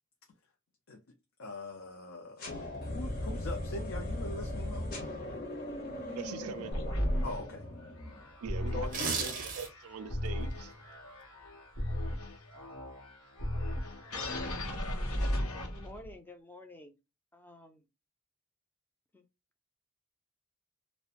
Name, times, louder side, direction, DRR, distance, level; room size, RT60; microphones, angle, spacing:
voice 1, 1.4-2.6 2.9-5.0 7.2-7.7 8.7-9.4, left 2 dB, 65° left, 0.5 m, -42 dB
sound 1, 2.4-8.3, left 1 dB, 40° left, 0.8 m, -38 dB
voice 2, 6.1-6.8 8.4-10.7, right 6 dB, 80° right, 0.4 m, -42 dB
sound 2, 6.7-16.1, equal, 80° left, 0.8 m, -36 dB
sound 3, 8.8-9.9 10.3-10.5, right 5 dB, 35° right, 0.6 m, -34 dB
voice 3, 15.6-17.0 17.3-17.8 19.1-19.2, left 1 dB, 10° left, 0.4 m, -50 dB
2.4 x 2.1 x 2.8 m
head